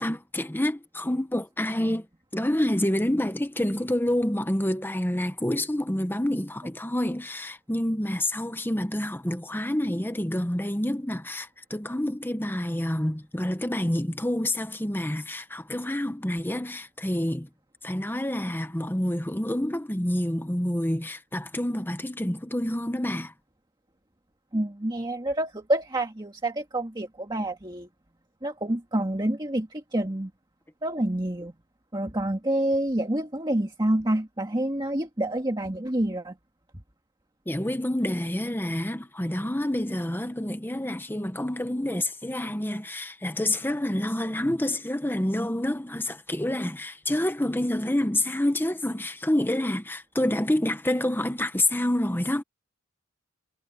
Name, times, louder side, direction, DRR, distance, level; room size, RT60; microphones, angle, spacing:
voice 1, 0.0-2.1 2.3-17.5 17.8-23.3 37.5-52.4, left 1 dB, 10° left, 1.1 m, -28 dB
voice 2, 24.5-27.9 28.4-30.3 30.8-31.5 31.9-36.3, right 1 dB, 20° right, 2.0 m, -28 dB
head